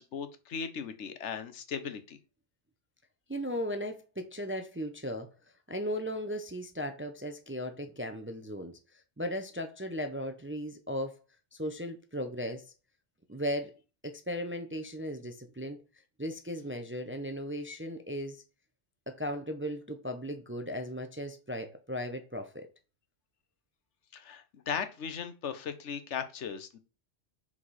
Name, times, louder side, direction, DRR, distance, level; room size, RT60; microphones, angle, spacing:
voice 1, 0.0-2.2 24.1-26.8, left 7 dB, 80° left, 1.2 m, -37 dB
voice 2, 3.3-5.3 5.7-11.2 11.5-12.7 13.3-13.8 14.0-15.8 16.2-18.4 19.1-22.7, equal, 15° right, 0.5 m, -37 dB
5.7 x 4.8 x 4.1 m
omnidirectional pair, 1.2 m